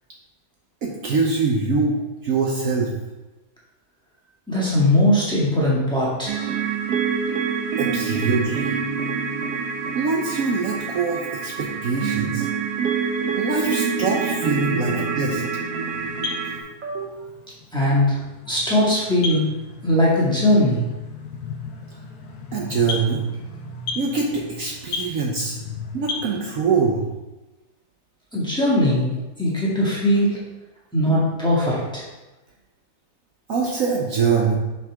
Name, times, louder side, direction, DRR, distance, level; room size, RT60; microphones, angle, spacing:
voice 1, 0.8-2.0 2.2-2.9 7.8-8.7 9.9-12.5 13.3-15.4 16.8-17.2 22.5-23.2 23.9-25.6 25.9-27.0 33.5-34.6, right 4 dB, 60° right, -2 dB, 1.2 m, -23 dB
voice 2, 4.5-6.5 17.7-18.2 18.5-19.5 19.8-20.8 28.3-29.1 29.4-30.4 30.9-32.0, left 1 dB, 5° left, -7 dB, 1.8 m, -20 dB
sound 1, 6.3-16.6, right 6 dB, 80° right, 1.3 m, -26 dB
sound 2, 15.9-26.9, left 4 dB, 70° left, 1.3 m, -35 dB
5.8 x 5.7 x 3.6 m, 1.1 s
omnidirectional pair, 1.7 m